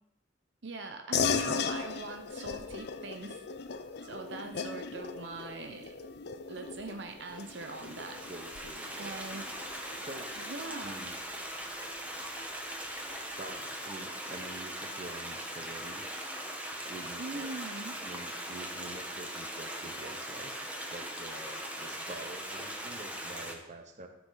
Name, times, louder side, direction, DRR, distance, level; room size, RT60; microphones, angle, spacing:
voice 1, 0.6-3.4 4.0-6.0 6.5-8.3 9.0-9.5 10.4-11.0 17.2-18.0, right 3 dB, 70° right, 5 dB, 0.7 m, -42 dB
sound 1, 1.1-11.0, left 5 dB, 60° left, 0.6 m, -37 dB
Stream, 7.2-23.5, right 1 dB, 10° right, 1.1 m, -40 dB
voice 2, 8.3-9.2 10.0-10.4 10.8-11.1 13.4-16.0 16.9-17.6 18.0-20.6 20.9-24.1, right 2 dB, 40° right, 5 dB, 1.0 m, -46 dB
13.0 x 6.1 x 4.0 m, 0.88 s
head